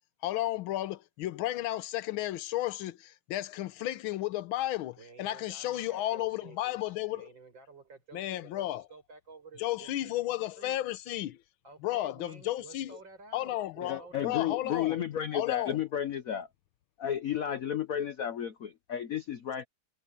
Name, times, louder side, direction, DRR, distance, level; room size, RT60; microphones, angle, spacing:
voice 1, 0.2-7.3 8.1-8.8 9.6-11.4 11.8-13.0 13.3-15.0 15.3-15.8, left 15 dB, 80° left, 1.6 m, -33 dB
voice 2, 5.0-10.8 11.6-14.6, right 4 dB, 65° right, 6.8 m, -52 dB
voice 3, 13.8-16.5 17.0-19.6, left 9 dB, 55° left, 1.0 m, -32 dB
omnidirectional pair, 2.2 m